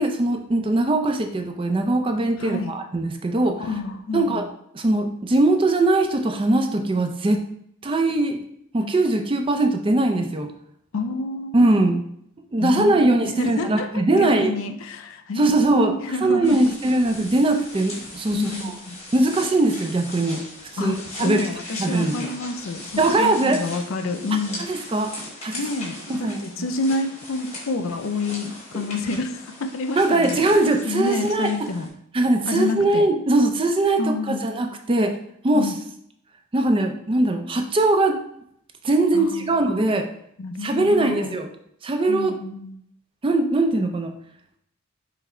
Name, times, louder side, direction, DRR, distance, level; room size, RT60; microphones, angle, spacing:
voice 1, 0.0-3.6 4.1-4.4 4.7-7.4 7.8-8.4 8.7-10.5 11.5-12.0 12.5-14.5 15.4-18.7 19.1-20.4 20.8-21.5 21.8-22.3 23.0-23.6 24.7-25.1 25.4-25.6 26.1-26.4 30.0-31.5 32.1-34.0 34.3-35.2 35.4-35.7 36.5-38.2 38.8-40.1 40.6-41.5 41.8-42.3 43.2-44.1, right 2 dB, 25° right, 5 dB, 0.4 m, -21 dB
voice 2, 2.4-2.7 3.6-4.5 10.9-11.9 12.6-12.9 13.2-16.6 18.3-19.0 20.8-24.7 25.5-30.5 30.8-31.9 32.5-33.1 34.0-34.4 35.5-35.8 39.1-39.6 40.4-41.4 42.1-42.8, left 3 dB, 70° left, 7 dB, 0.5 m, -29 dB
sound 1, 16.4-31.9, left 2 dB, 30° left, 1.3 m, -39 dB
5.7 x 2.0 x 4.2 m, 0.71 s
head